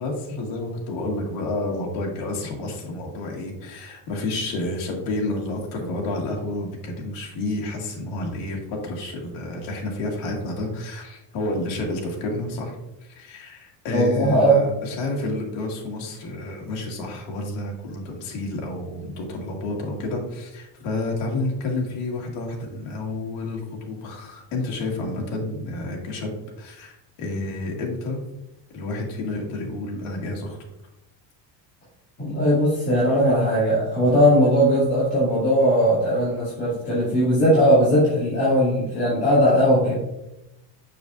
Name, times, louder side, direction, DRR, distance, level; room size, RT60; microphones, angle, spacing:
voice 1, 0.0-12.8 13.0-26.3 26.6-28.2 28.7-30.6, left 2 dB, 85° left, -1 dB, 2.0 m, -30 dB
voice 2, 13.9-14.5 32.2-40.0, equal, 25° left, -10 dB, 2.4 m, -19 dB
6.8 x 6.6 x 2.5 m, 0.91 s
cardioid pair, 165°, 45 cm